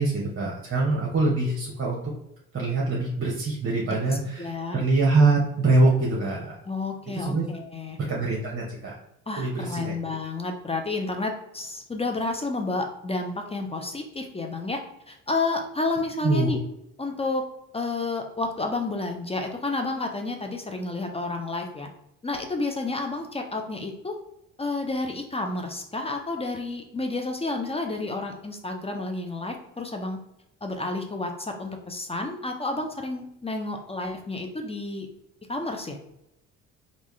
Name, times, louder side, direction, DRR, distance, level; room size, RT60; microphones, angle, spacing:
voice 1, 0.0-2.1 2.5-6.5 7.1-7.5 8.1-9.0 9.4-9.9 16.2-16.5, right 3 dB, 30° right, -3 dB, 1.0 m, -24 dB
voice 2, 4.4-4.8 6.6-8.0 9.3-14.8 15.1-16.6 17.0-17.4 17.7-21.9 22.2-24.1 24.6-30.2 30.6-35.1 35.5-36.0, left 3 dB, 15° left, 3 dB, 0.6 m, -30 dB
3.5 x 2.6 x 3.2 m, 0.82 s
hypercardioid pair, 55°, 39 cm